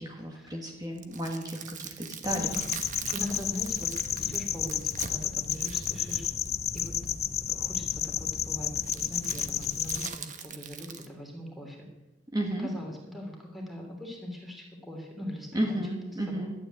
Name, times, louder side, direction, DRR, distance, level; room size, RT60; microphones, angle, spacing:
voice 1, 0.0-2.5 12.3-12.7 15.5-16.5, right 1 dB, 20° right, 1 dB, 1.6 m, -33 dB
sound 1, 0.8-7.1 8.8-11.1, right 7 dB, 40° right, 1.2 m, -42 dB
sound 2, 2.2-10.1, left 9 dB, 35° left, 0.6 m, -31 dB
voice 2, 2.3-2.8 3.1-6.2 6.7-6.9 7.5-11.9 12.6-15.8 16.1-16.5, left 1 dB, ahead, 0 dB, 3.0 m, -41 dB
12.5 x 9.4 x 9.1 m, 1.0 s
head